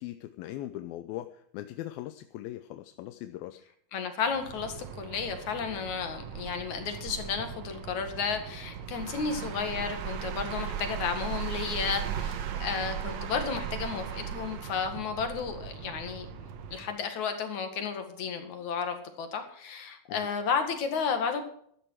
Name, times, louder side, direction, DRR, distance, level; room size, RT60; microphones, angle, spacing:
voice 1, 0.0-3.6 20.1-20.3, left 14 dB, 80° left, 9 dB, 2.5 m, -40 dB
voice 2, 3.9-16.4 16.7-21.4, left 6 dB, 55° left, 6 dB, 3.0 m, -33 dB
sound 1, 4.3-17.0, right 8 dB, 65° right, 1.9 m, -38 dB
13.5 x 12.5 x 4.7 m, 0.65 s
omnidirectional pair, 4.3 m